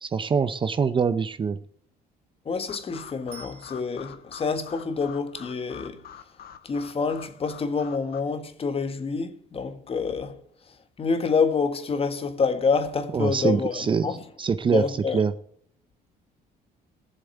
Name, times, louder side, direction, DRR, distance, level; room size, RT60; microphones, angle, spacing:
voice 1, 0.0-1.6 13.1-14.1 14.4-14.8 15.1-15.3, right 6 dB, 30° right, 0.7 m, -24 dB
voice 2, 2.4-6.0 6.6-10.4 11.0-14.3 14.7-15.2, left 5 dB, 35° left, 1.6 m, -27 dB
sound 1, 2.7-8.2, left 9 dB, 65° left, 1.2 m, -46 dB
Bicycle bell, 3.3-4.4 13.5-13.6, right 7 dB, 75° right, 1.7 m, -50 dB
15.0 x 7.4 x 8.1 m
cardioid pair, 110°, 17 cm